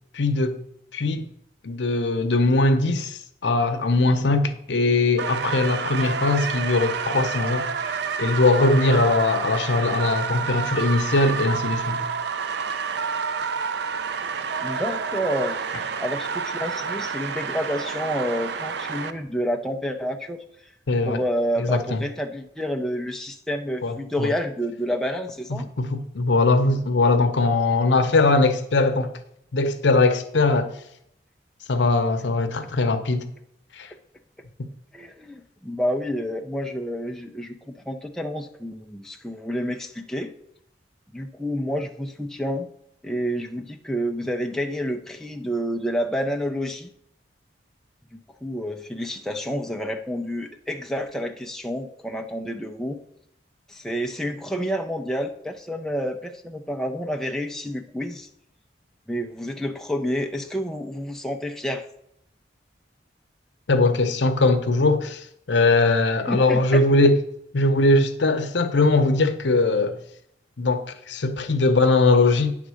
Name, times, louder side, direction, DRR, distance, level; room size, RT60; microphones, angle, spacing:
voice 1, 0.1-0.6 0.9-1.2 1.6-7.7 8.2-12.1 20.9-21.2 21.6-22.0 23.8-24.3 25.8-29.1 29.5-30.7 31.7-33.3 33.8-33.9 63.7-67.2 67.5-70.0 70.6-72.6, left 2 dB, 70° left, 0.8 m, -20 dB
sound 1, 5.2-19.1, right 6 dB, 60° right, 0.5 m, -29 dB
voice 2, 14.6-15.6 16.0-20.4 21.0-25.7 34.9-40.3 41.1-42.7 43.0-46.9 48.1-53.0 53.7-58.3 59.1-61.8 66.3-66.8, equal, 5° left, 0.5 m, -29 dB
9.4 x 3.8 x 6.2 m
head